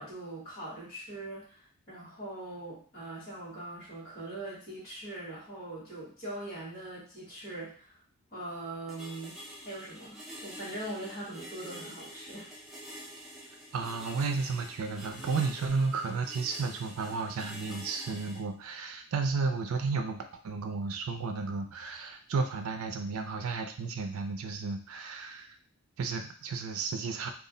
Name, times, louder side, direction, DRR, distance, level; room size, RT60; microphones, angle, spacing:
voice 1, 0.0-8.0 8.3-9.4 9.6-12.5, right 1 dB, 45° left, -11 dB, 1.2 m, -41 dB
sound 1, 8.9-18.4, equal, ahead, 0.5 m, -47 dB
voice 2, 13.7-25.5 26.0-27.3, right 4 dB, 80° right, 6 dB, 0.4 m, -33 dB
2.3 x 2.0 x 3.7 m, 0.42 s
head